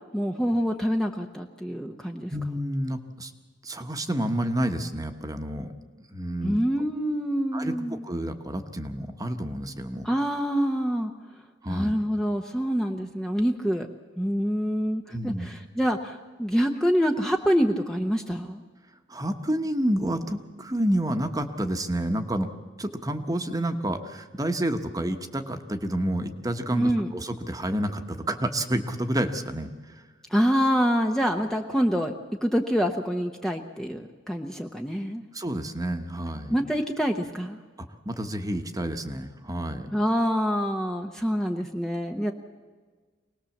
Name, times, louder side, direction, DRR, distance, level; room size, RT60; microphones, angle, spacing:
voice 1, 0.1-2.3 6.4-8.0 10.0-11.1 11.7-13.9 14.2-18.6 26.7-27.1 30.3-32.1 32.4-35.2 36.5-37.6 39.9-42.3, equal, 5° left, 2 dB, 0.9 m, -26 dB
voice 2, 2.3-3.3 3.6-5.7 6.1-6.6 7.5-7.7 8.0-10.1 11.6-11.9 15.1-15.5 19.1-22.5 22.8-29.7 35.3-36.6 38.1-39.9, right 1 dB, 20° right, 7 dB, 1.2 m, -29 dB
25.0 x 19.0 x 7.2 m, 1.4 s
head